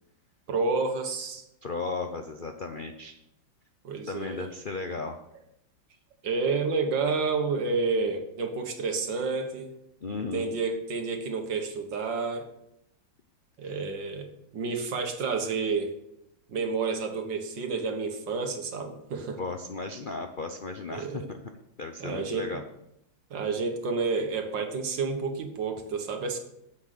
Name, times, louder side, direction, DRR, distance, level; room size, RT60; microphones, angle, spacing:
voice 1, 0.5-1.4 3.8-4.5 6.2-9.7 10.3-12.5 13.6-15.9 16.5-19.4 20.9-21.3 22.0-22.6 23.3-26.4, right 4 dB, 70° right, 5 dB, 2.1 m, -30 dB
voice 2, 1.6-3.2 4.1-5.2 10.0-10.5 13.6-13.7 19.4-21.4 21.8-22.6, left 3 dB, 75° left, 6 dB, 0.4 m, -35 dB
9.8 x 7.9 x 6.7 m, 0.82 s
omnidirectional pair, 2.1 m